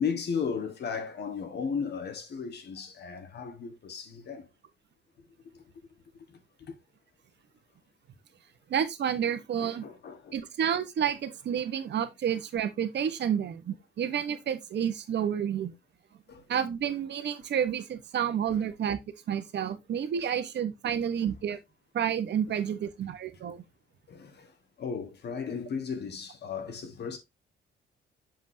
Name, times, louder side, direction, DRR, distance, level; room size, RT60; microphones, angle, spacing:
voice 1, 0.0-4.5 5.5-5.6 6.3-6.8 9.6-10.4 16.3-16.5 18.5-18.6 20.9-21.1 24.1-27.2, left 6 dB, 55° left, 1.8 m, -35 dB
voice 2, 8.7-9.9 10.3-15.7 16.5-19.0 19.3-21.6 21.9-23.6, right 8 dB, 60° right, 1.2 m, -30 dB
7.4 x 5.3 x 2.8 m
cardioid pair, 90°, 20 cm